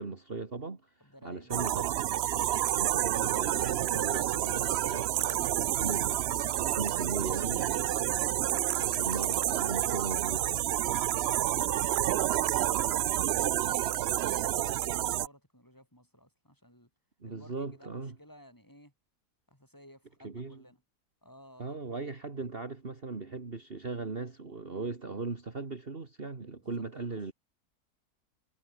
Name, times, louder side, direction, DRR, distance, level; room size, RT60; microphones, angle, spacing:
voice 1, 0.0-1.9 2.6-8.0 8.5-10.6 17.2-18.2 20.2-20.6 21.6-27.3, right 4 dB, 35° right, 2.3 m, -38 dB
voice 2, 1.0-1.8 11.5-16.9 17.2-18.9 19.5-20.8 21.2-21.8 26.6-27.3, equal, 10° left, 8.0 m, -56 dB
sound 1, 1.5-15.3, right 12 dB, 70° right, 0.6 m, -29 dB
omnidirectional pair, 1.6 m